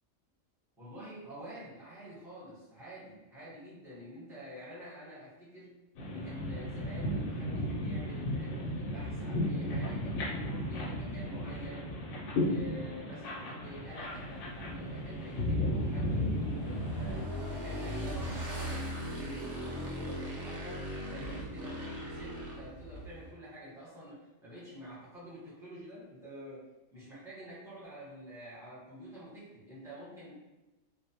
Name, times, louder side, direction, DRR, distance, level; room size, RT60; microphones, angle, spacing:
voice 1, 0.8-5.7 6.0-11.9 12.3-30.3, equal, ahead, -10 dB, 0.9 m, -48 dB
sound 1, 5.9-17.2, left 1 dB, 75° left, 1.0 m, -34 dB
Motorcycle / Engine, 13.6-23.3, equal, 60° right, 0.9 m, -40 dB
2.5 x 2.0 x 2.7 m, 1.1 s
omnidirectional pair, 1.5 m